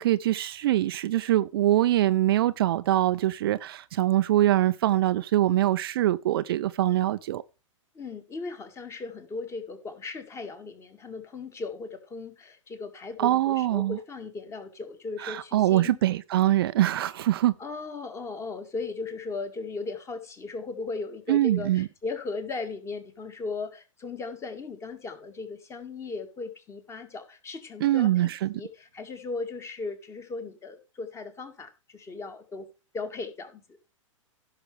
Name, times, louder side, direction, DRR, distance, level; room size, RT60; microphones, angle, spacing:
voice 1, 0.0-7.4 13.2-14.0 15.2-17.5 21.3-21.9 27.8-28.5, right 14 dB, 45° right, 0.5 m, -23 dB
voice 2, 8.0-16.0 17.6-32.7 32.9-33.6, left 3 dB, 15° left, 2.0 m, -37 dB
15.5 x 6.7 x 3.3 m
figure-of-eight pair, 110°, 17 cm